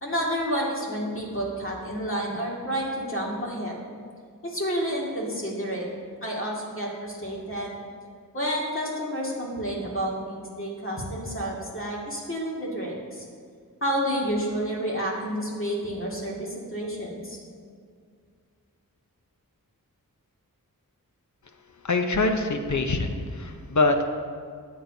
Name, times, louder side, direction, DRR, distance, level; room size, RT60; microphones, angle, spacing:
voice 1, 0.0-3.8 4.4-5.9 6.2-7.8 8.3-13.3 13.8-17.4, equal, 35° left, -3 dB, 2.2 m, -30 dB
voice 2, 21.8-24.0, left 3 dB, 55° left, 5 dB, 0.9 m, -24 dB
13.5 x 8.7 x 2.8 m, 2.1 s
wide cardioid pair, 75°, 35 cm